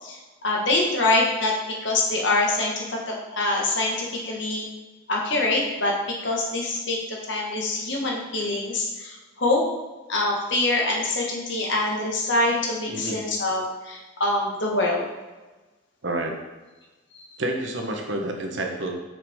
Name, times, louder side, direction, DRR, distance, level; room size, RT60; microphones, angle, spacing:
voice 1, 0.0-4.6 5.1-9.6 10.1-15.0, left 2 dB, 60° left, -2 dB, 1.5 m, -25 dB
voice 2, 12.9-13.2 16.0-16.3 17.4-18.9, right 1 dB, 65° right, 2 dB, 1.0 m, -29 dB
7.4 x 5.8 x 3.6 m, 1.2 s
head